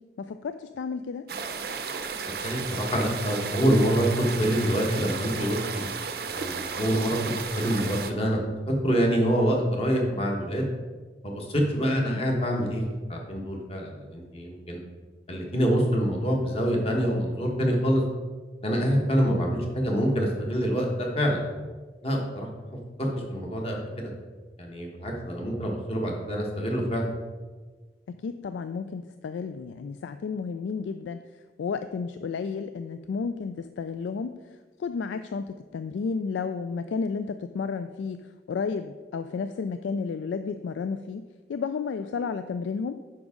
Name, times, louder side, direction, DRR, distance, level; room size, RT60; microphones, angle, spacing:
voice 1, 0.2-1.3 28.1-31.2 31.6-34.3 34.8-41.2 41.5-43.0, left 5 dB, 85° left, 10 dB, 0.3 m, -32 dB
sound 1, 1.3-8.1, right 5 dB, 55° right, 0.6 m, -34 dB
voice 2, 2.4-5.9 6.3-8.4 8.7-10.7 11.2-12.8 13.1-14.8 15.3-18.0 18.6-21.4 22.0-22.5 23.0-24.1 24.6-27.1, equal, 30° left, 0 dB, 1.3 m, -26 dB
9.0 x 6.0 x 3.7 m, 1.4 s
head